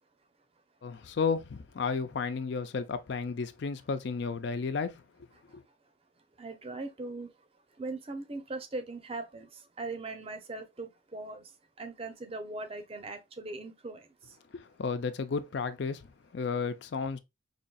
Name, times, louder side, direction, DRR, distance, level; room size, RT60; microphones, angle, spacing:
voice 1, 0.8-5.0 5.5-5.6 14.5-17.2, left 5 dB, 60° left, 0.4 m, -33 dB
voice 2, 6.4-14.4, right 2 dB, 30° right, 0.6 m, -40 dB
5.2 x 2.6 x 2.3 m
head